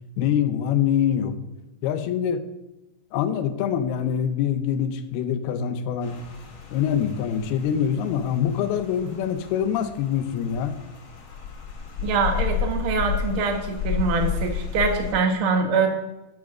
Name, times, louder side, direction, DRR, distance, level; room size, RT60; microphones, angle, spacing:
voice 1, 0.2-1.4 1.8-2.5 3.1-6.2 6.7-10.8, left 9 dB, 85° left, 9 dB, 2.8 m, -24 dB
Rain, 6.0-15.1, left 7 dB, 50° left, 3.0 m, -32 dB
voice 2, 12.0-15.9, right 4 dB, 55° right, 5 dB, 1.5 m, -24 dB
10.5 x 7.3 x 6.1 m, 0.98 s
omnidirectional pair, 4.4 m